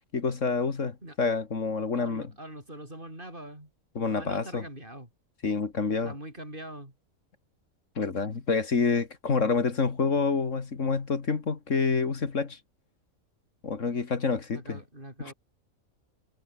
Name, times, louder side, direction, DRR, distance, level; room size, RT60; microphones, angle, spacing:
voice 1, 0.1-2.3 4.0-4.6 5.4-6.1 8.0-12.6 13.6-14.8 15.2-15.3, left 4 dB, 65° left, 2.3 m, -28 dB
voice 2, 2.0-3.7 4.1-5.1 6.0-6.9 14.5-15.3, right 1 dB, 40° right, 7.8 m, -43 dB
omnidirectional pair, 1.4 m